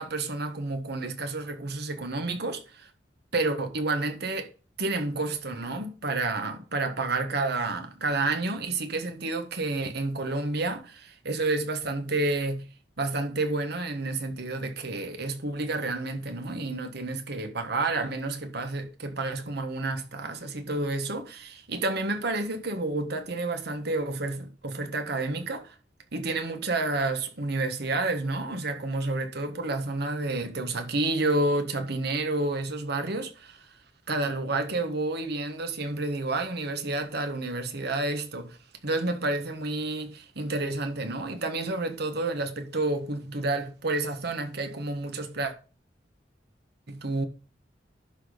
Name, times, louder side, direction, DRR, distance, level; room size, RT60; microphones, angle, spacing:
voice 1, 0.0-2.9 3.3-4.5 4.8-12.7 13.0-25.7 26.1-33.7 34.1-38.6 38.8-45.5 46.9-47.2, right 2 dB, 65° right, 1.4 m, -30 dB
11.0 x 4.2 x 5.0 m
head